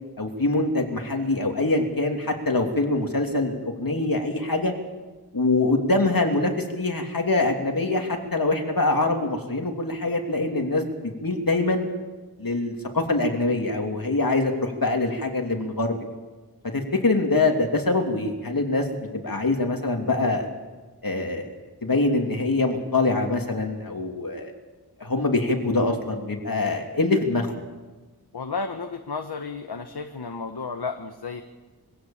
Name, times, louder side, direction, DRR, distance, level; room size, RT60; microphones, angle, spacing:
voice 1, 0.2-4.7 5.3-11.9 12.4-16.0 16.7-18.9 19.1-20.5 21.0-21.5 21.8-24.5 25.0-27.5, left 2 dB, 60° left, 2 dB, 3.0 m, -24 dB
voice 2, 28.3-31.4, left 4 dB, 85° left, 5 dB, 1.2 m, -32 dB
23.5 x 16.5 x 7.3 m, 1.2 s
wide cardioid pair, 65°, 38 cm